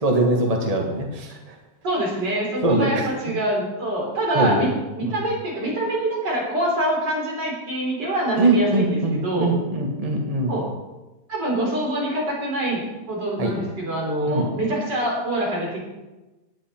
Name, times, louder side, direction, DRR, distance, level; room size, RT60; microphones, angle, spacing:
voice 1, 0.0-1.4 2.6-3.1 4.3-4.7 5.0-5.2 8.4-10.5 13.4-13.5 14.3-14.5, right 2 dB, 20° right, 1 dB, 1.6 m, -22 dB
voice 2, 1.8-9.5 10.5-10.7 11.3-15.8, right 1 dB, 80° right, -3 dB, 4.7 m, -25 dB
17.0 x 10.0 x 4.5 m, 1.1 s
omnidirectional pair, 1.9 m